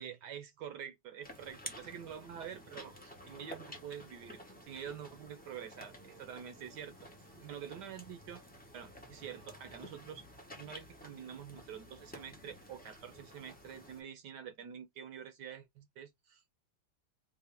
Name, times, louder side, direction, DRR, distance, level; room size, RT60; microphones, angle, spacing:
voice 1, 0.0-6.9 7.2-8.4 8.7-10.2 10.5-16.4, right 8 dB, 70° right, 1.2 m, -47 dB
sound 1, 1.2-14.0, left 1 dB, 15° left, 0.3 m, -52 dB
4.1 x 2.4 x 3.4 m
omnidirectional pair, 2.1 m